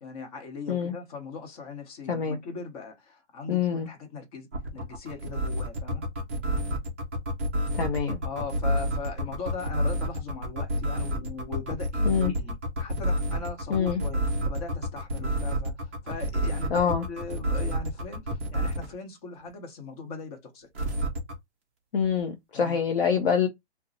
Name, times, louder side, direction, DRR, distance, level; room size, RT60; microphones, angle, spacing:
voice 1, 0.0-6.1 8.2-20.7 22.5-22.8, left 4 dB, 35° left, 1.1 m, -39 dB
voice 2, 3.5-3.9 7.8-8.2 12.0-12.3 13.7-14.0 16.7-17.0 21.9-23.5, left 7 dB, 50° left, 0.7 m, -25 dB
sound 1, 4.5-18.9 20.7-21.3, equal, 10° right, 0.3 m, -28 dB
2.8 x 2.3 x 3.9 m
hypercardioid pair, 150°, 34 cm